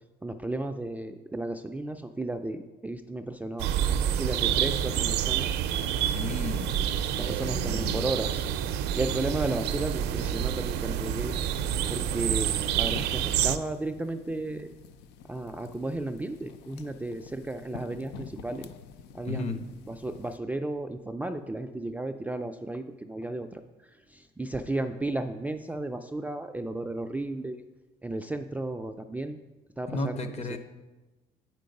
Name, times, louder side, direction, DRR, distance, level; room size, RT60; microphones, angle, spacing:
voice 1, 0.2-3.7 4.2-5.5 7.2-8.5 8.9-11.3 11.9-14.7 15.3-18.7 19.1-19.6 19.9-23.6 24.1-27.6 28.0-29.4 29.8-30.2 30.5-30.6, right 2 dB, 10° right, 6 dB, 0.3 m, -34 dB
sound 1, 3.6-13.6, right 10 dB, 85° right, 0.5 m, -28 dB
voice 2, 6.0-6.8 7.2-8.1 19.3-19.6 29.9-30.6, left 3 dB, 40° left, 9 dB, 0.8 m, -34 dB
sound 2, 10.4-20.4, left 6 dB, 90° left, 0.5 m, -48 dB
8.4 x 4.6 x 5.2 m, 1.1 s
cardioid pair, 110°, 17 cm